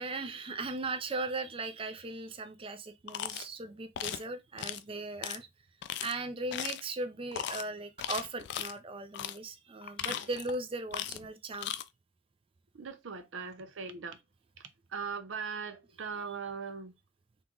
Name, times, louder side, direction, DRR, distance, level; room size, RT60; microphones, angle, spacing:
voice 1, 0.0-5.5 6.0-11.7 16.3-16.4, right 2 dB, 30° right, 0.5 m, -38 dB
sound 1, 3.1-3.5 4.0-4.2 4.6-4.8 5.2-5.4 5.8-6.1 6.5-6.9 7.3-7.6 8.0-8.7 9.1-9.4 9.8-10.6 10.9-11.3 11.5-11.8, left 10 dB, 60° left, 0.4 m, -37 dB
voice 2, 12.7-14.2 14.9-16.9, right 5 dB, 80° right, 0.6 m, -39 dB
3.6 x 3.0 x 3.7 m
head